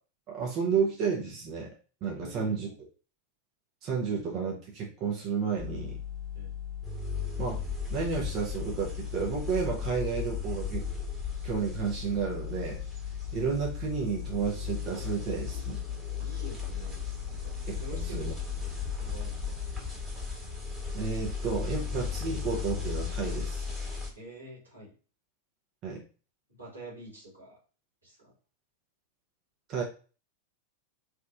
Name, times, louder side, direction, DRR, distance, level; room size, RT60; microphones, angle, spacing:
voice 1, 0.3-1.7 2.0-2.7 3.8-6.0 7.4-7.6 7.9-10.9 11.4-12.8 13.3-15.8 17.6-18.3 20.9-23.7 25.8-26.0 29.7-29.8, right 5 dB, 35° right, -2 dB, 0.7 m, -31 dB
voice 2, 2.1-2.8 6.3-6.5 16.2-18.4 18.9-19.5 24.1-24.9 26.6-27.6 28.0-28.3, right 1 dB, 80° right, -5 dB, 1.4 m, -47 dB
sound 1, 5.6-19.7, left 10 dB, 15° left, 0.3 m, -39 dB
sound 2, 6.8-24.1, left 5 dB, 10° right, 1.4 m, -37 dB
2.9 x 2.3 x 2.4 m, 0.36 s
figure-of-eight pair, 90°, 0 cm